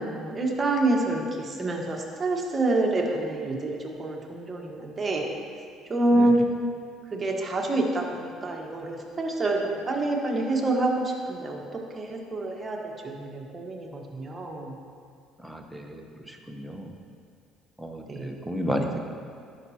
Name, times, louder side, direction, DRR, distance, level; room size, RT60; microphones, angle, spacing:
voice 1, 0.0-5.2 5.9-6.4 7.1-14.7 18.1-18.3, right 2 dB, 30° right, 0 dB, 1.3 m, -27 dB
voice 2, 15.4-16.9 17.8-19.0, equal, ahead, 2 dB, 0.9 m, -33 dB
12.0 x 5.7 x 2.9 m, 2.2 s
supercardioid pair, 80°, 0 cm